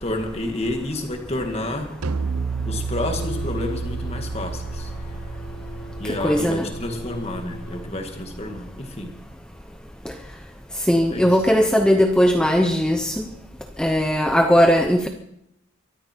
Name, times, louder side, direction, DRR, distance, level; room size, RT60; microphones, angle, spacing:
voice 1, 0.0-2.0 2.7-4.9 6.0-9.1 11.1-11.5, left 1 dB, 30° left, 4 dB, 2.0 m, -30 dB
sound 1, 2.0-7.4, right 4 dB, 90° right, 0.8 m, -31 dB
sound 2, 3.0-7.9, equal, 50° left, 2.2 m, -38 dB
voice 2, 6.2-6.7 10.8-13.2 13.8-15.1, equal, 5° left, 4 dB, 0.8 m, -18 dB
23.5 x 13.0 x 4.6 m, 0.79 s
head